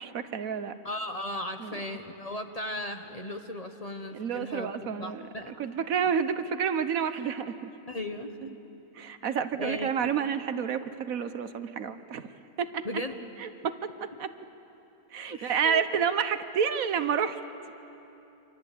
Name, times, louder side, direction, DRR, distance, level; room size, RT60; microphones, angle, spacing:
voice 1, 0.0-0.7 1.6-1.8 4.1-5.3 5.6-7.7 8.4-8.5 9.0-12.3 12.6-12.9 13.4-14.3 15.1-17.4, right 7 dB, 70° right, 11 dB, 1.3 m, -29 dB
voice 2, 0.8-5.5 7.9-8.5 9.2-9.3 9.6-9.9 12.8-13.1 15.3-15.8, left 1 dB, 30° left, 5 dB, 1.1 m, -36 dB
28.0 x 25.0 x 8.4 m, 3.0 s
omnidirectional pair, 1.5 m